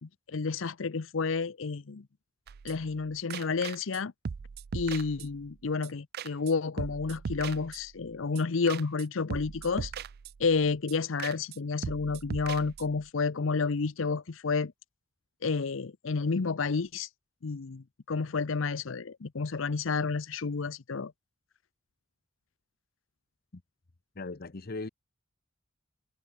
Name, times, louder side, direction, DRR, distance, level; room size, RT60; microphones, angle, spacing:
voice 1, 0.0-2.0 2.6-4.1 4.7-9.9 10.4-14.7 15.4-17.1 17.4-21.1, left 4 dB, 75° left, 0.7 m, -30 dB
sound 1, 2.5-3.0 3.3-4.0 4.3-5.6 5.8-5.9 6.1-6.5 6.8-8.1 8.4-8.5 8.7-9.1 9.3-10.6 10.9-11.0 11.2-11.6 11.8-13.1, right 6 dB, 50° right, 0.4 m, -39 dB
voice 2, 24.1-24.9, left 3 dB, 50° left, 0.9 m, -38 dB
head